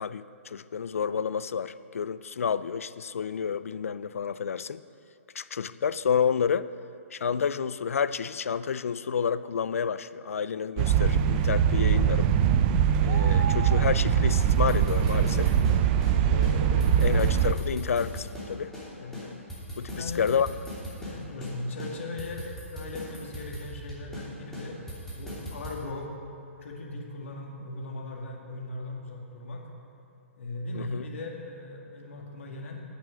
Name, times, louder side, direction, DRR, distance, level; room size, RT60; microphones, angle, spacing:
voice 1, 0.0-4.8 5.3-6.7 7.1-12.3 13.0-15.5 16.3-19.4 19.8-20.5 30.7-31.0, left 7 dB, 80° left, 15 dB, 0.4 m, -30 dB
sound 1, 10.8-17.5, right 8 dB, 35° right, 0.5 m, -22 dB
sound 2, 14.5-16.2 16.4-16.5 16.8-18.9 19.1-21.2 21.4-21.5 21.8-24.3 24.5-25.8, equal, 5° left, 2.9 m, -39 dB
voice 2, 19.9-20.3 21.0-24.8 25.2-26.1 26.6-29.6 30.4-32.8, left 2 dB, 65° left, 0 dB, 2.1 m, -38 dB
9.1 x 8.6 x 6.2 m, 2.6 s
hypercardioid pair, 135°, 7 cm